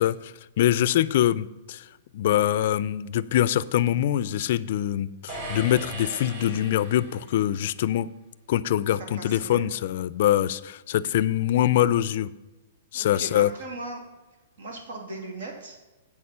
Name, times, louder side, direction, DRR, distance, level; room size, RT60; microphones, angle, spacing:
voice 1, 0.0-1.8 2.1-8.1 8.5-12.3 12.9-13.5, left 12 dB, 50° left, 17 dB, 0.4 m, -24 dB
sound 1, 5.3-7.5, right 1 dB, 45° right, 3.2 m, -38 dB
voice 2, 9.1-9.6 12.9-14.0 14.6-15.8, right 2 dB, 75° right, 3 dB, 2.8 m, -38 dB
8.6 x 6.6 x 5.6 m, 1.1 s
hypercardioid pair, 165°, 0 cm